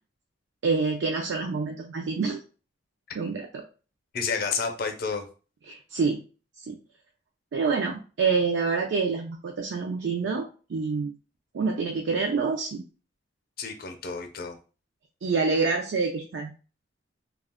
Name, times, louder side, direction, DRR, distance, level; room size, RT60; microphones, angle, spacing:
voice 1, 0.6-2.4 3.2-3.6 5.7-6.2 6.6-6.8 7.5-11.1 11.5-12.8 15.2-16.5, right 4 dB, 85° right, 2 dB, 0.4 m, -27 dB
voice 2, 4.1-5.3 13.6-14.6, left 5 dB, 55° left, 5 dB, 0.6 m, -30 dB
2.3 x 2.0 x 3.5 m, 0.35 s
head